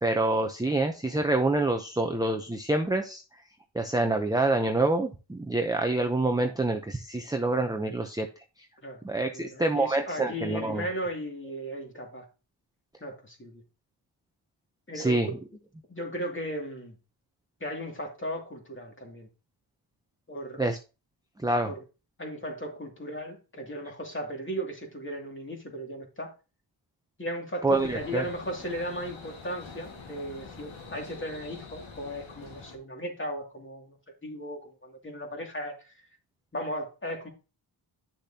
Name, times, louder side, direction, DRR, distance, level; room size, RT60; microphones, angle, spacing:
voice 1, 0.0-3.2 3.7-8.3 9.0-10.9 14.9-15.3 20.6-20.8 21.4-21.7 27.6-28.2, right 2 dB, 10° right, 4 dB, 0.7 m, -26 dB
voice 2, 9.3-12.3 13.0-13.6 14.9-15.4 15.9-16.9 17.6-19.3 20.3-20.6 21.7-21.8 22.2-26.3 27.2-34.0 34.2-35.9 36.5-37.3, equal, 25° left, 1 dB, 2.5 m, -36 dB
sound 1, 27.7-32.8, left 4 dB, 75° left, 1.9 m, -45 dB
10.0 x 6.5 x 2.8 m, 0.31 s
wide cardioid pair, 105°, 48 cm